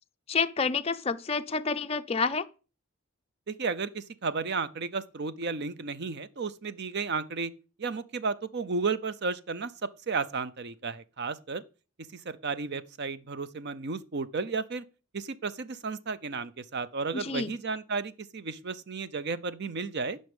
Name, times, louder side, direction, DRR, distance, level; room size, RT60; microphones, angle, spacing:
voice 1, 0.3-2.5 17.1-17.5, left 4 dB, 25° left, 0.4 m, -29 dB
voice 2, 3.5-7.5 7.8-9.7 10.1-11.6 12.1-14.8 15.1-20.2, right 4 dB, 50° right, 0.6 m, -33 dB
11.0 x 5.4 x 5.2 m
head